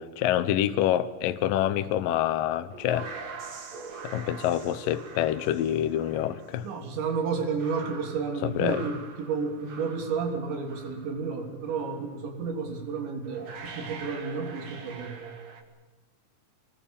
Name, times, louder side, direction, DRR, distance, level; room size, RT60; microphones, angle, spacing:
voice 1, 0.0-3.1 4.0-6.7 8.4-8.8, left 11 dB, 70° left, 2.2 m, -26 dB
sound 1, 2.4-11.3 11.6-12.0 12.8-12.9 13.2-15.6, right 5 dB, 45° right, 3.0 m, -43 dB
voice 2, 6.6-15.2, right 5 dB, 90° right, 5.6 m, -31 dB
26.0 x 20.0 x 7.2 m
omnidirectional pair, 5.0 m